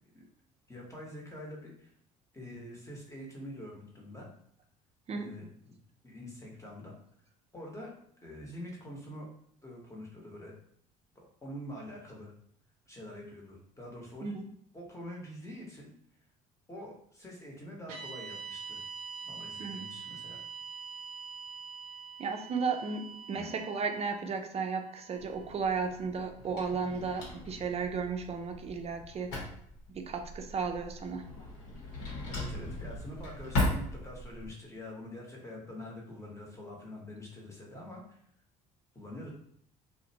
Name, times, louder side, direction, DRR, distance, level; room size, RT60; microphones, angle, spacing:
voice 1, 0.7-1.9 2.3-4.3 5.1-5.8 6.0-7.0 7.5-7.9 8.2-9.3 9.6-10.5 11.4-12.3 12.9-14.3 14.7-15.9 16.7-18.8 19.2-20.4 23.3-23.5 31.4-31.5 32.3-38.2 38.9-39.3, left 1 dB, 15° left, -2 dB, 1.0 m, -45 dB
sound 1, 17.9-26.2, right 5 dB, 80° right, 0.5 m, -45 dB
voice 2, 22.2-29.4 29.9-31.3, right 5 dB, 35° right, 5 dB, 0.5 m, -34 dB
Drawer open or close, 25.2-34.5, left 2 dB, 70° left, 0.9 m, -38 dB
2.4 x 2.1 x 2.7 m, 0.67 s
hypercardioid pair, 65°, 18 cm